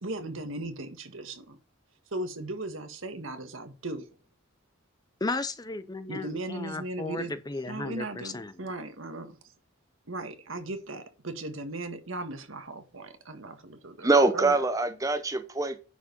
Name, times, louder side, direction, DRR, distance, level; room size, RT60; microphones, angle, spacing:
voice 1, 0.0-1.6 2.1-4.1 6.1-7.3 7.7-9.4 10.1-14.6, right 2 dB, 70° right, 1.6 m, -37 dB
voice 2, 5.2-8.5, left 3 dB, 20° left, 0.6 m, -34 dB
voice 3, 14.0-15.8, right 3 dB, 15° right, 0.8 m, -24 dB
10.0 x 4.8 x 5.4 m
head